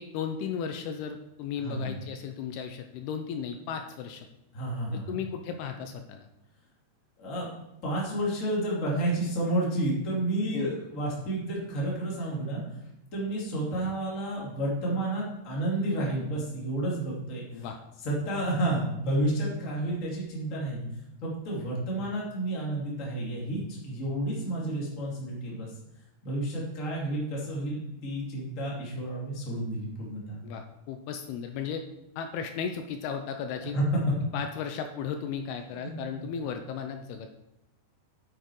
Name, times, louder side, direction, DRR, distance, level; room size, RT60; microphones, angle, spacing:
voice 1, 0.0-4.3 4.9-6.3 10.5-10.7 17.5-17.8 30.4-31.8 32.2-33.8 34.3-37.3, left 7 dB, 80° left, 6 dB, 2.5 m, -35 dB
voice 2, 1.6-2.0 4.5-5.2 7.2-7.5 7.8-12.6 13.1-17.4 18.0-20.9 21.2-25.7 26.2-30.5 33.6-33.8 35.8-35.9 36.2-36.3, right 1 dB, 20° left, -4 dB, 2.3 m, -31 dB
9.1 x 8.9 x 4.7 m, 0.87 s
omnidirectional pair, 4.8 m